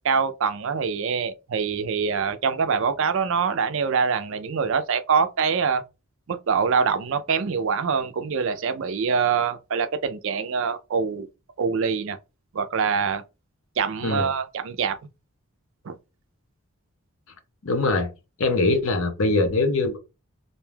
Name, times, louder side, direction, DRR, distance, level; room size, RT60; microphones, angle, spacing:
voice 1, 0.0-5.8 6.3-11.3 11.6-12.2 12.5-13.2 13.8-15.0 15.8-15.9, right 6 dB, 60° right, 0.4 m, -24 dB
voice 2, 14.0-14.3 17.6-18.1 18.4-20.0, left 2 dB, 65° left, 0.6 m, -22 dB
2.5 x 2.2 x 3.2 m
head